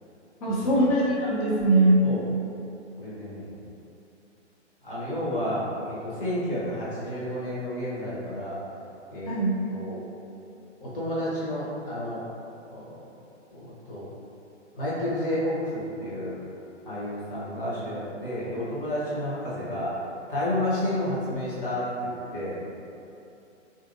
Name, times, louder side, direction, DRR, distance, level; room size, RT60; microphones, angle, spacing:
voice 1, 0.4-2.0 9.3-9.6, right 1 dB, 30° left, -7 dB, 0.6 m, -21 dB
voice 2, 3.0-3.5 4.8-8.6 9.1-9.3 9.7-10.0 10.8-12.2 12.7-13.0 13.5-14.1 14.7-16.4 16.8-19.9 20.3-22.6, left 1 dB, 45° left, -8 dB, 1.1 m, -31 dB
3.1 x 2.7 x 2.5 m, 2.7 s
figure-of-eight pair, 125°, 37 cm